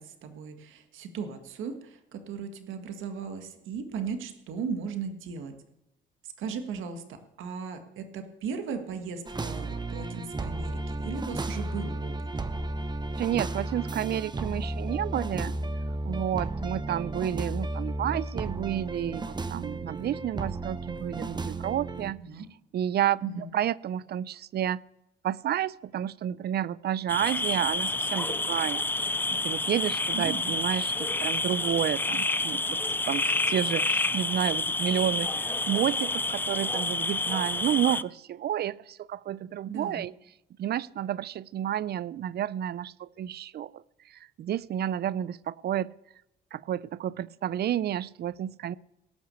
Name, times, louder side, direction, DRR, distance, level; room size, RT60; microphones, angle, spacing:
voice 1, 0.0-5.5 6.4-12.1 22.2-22.5 23.2-23.5 30.1-30.5 39.6-40.1, right 5 dB, 85° right, 7 dB, 1.7 m, -37 dB
sound 1, 9.3-22.1, right 2 dB, 20° right, 1.0 m, -33 dB
voice 2, 13.2-15.5 16.0-22.2 22.7-23.2 23.5-24.8 25.2-28.9 29.3-32.8 33.1-40.1 40.6-45.9 46.5-48.7, right 11 dB, 55° right, 22 dB, 0.4 m, -30 dB
sound 2, 27.1-38.0, left 2 dB, 10° left, 0.4 m, -29 dB
17.5 x 6.1 x 8.3 m, 0.90 s
cardioid pair, 90°, 20 cm